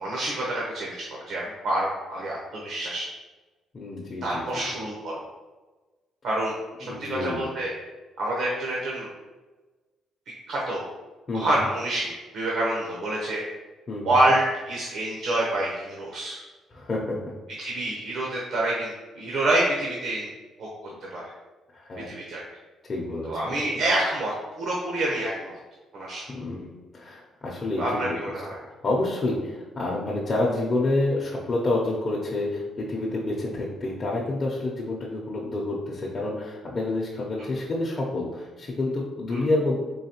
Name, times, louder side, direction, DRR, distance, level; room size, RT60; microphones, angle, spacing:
voice 1, 0.0-3.0 4.2-5.2 6.2-7.7 8.2-9.1 10.5-10.8 11.3-13.4 14.0-16.4 17.6-20.3 20.6-20.7 21.1-21.2 22.1-22.4 23.3-25.6 25.9-26.2 27.8-28.6 39.3-39.4, right 1 dB, 75° right, -4 dB, 0.8 m, -27 dB
voice 2, 3.7-4.4 6.9-7.5 11.3-11.6 13.9-14.2 16.7-17.2 20.9-21.1 21.7-22.1 22.8-23.6 26.3-28.4 28.6-39.8, left 2 dB, 40° left, -4 dB, 0.6 m, -28 dB
3.9 x 3.1 x 2.9 m, 1.2 s
cardioid pair, 90°, 0 cm